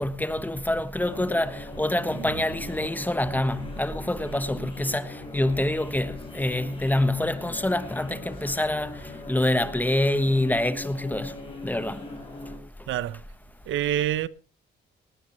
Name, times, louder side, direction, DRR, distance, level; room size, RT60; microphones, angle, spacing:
voice 1, 0.0-8.9 9.3-11.3 11.6-12.0, left 1 dB, 10° left, 1.2 m, -26 dB
sound 1, 1.0-12.6, left 2 dB, 25° left, 6.7 m, -40 dB
voice 2, 2.1-2.4 3.3-3.6 4.2-4.7 12.9-13.2 13.7-14.3, right 12 dB, 75° right, 0.7 m, -30 dB
19.0 x 17.0 x 3.1 m
cardioid pair, 90°, 20 cm